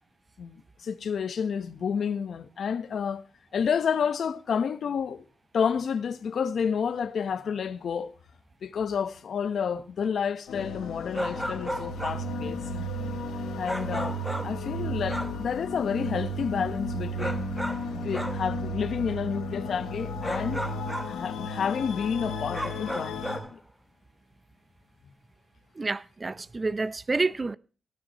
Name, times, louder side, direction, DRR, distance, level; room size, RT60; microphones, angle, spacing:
voice 1, 0.4-3.2 3.5-5.2 5.5-8.1 8.6-12.9 13.6-17.4 17.9-20.6 21.1-23.6, left 7 dB, 70° left, 1.1 m, -30 dB
sound 1, 10.5-23.4, equal, 90° left, 3.7 m, -34 dB
sound 2, 11.1-12.3 13.6-14.7 15.1-15.4 17.2-18.5 20.2-21.2 22.5-23.5, equal, 5° right, 1.4 m, -34 dB
voice 2, 25.8-27.6, right 3 dB, 35° right, 0.7 m, -28 dB
18.5 x 9.7 x 3.1 m
supercardioid pair, 55°, 0 cm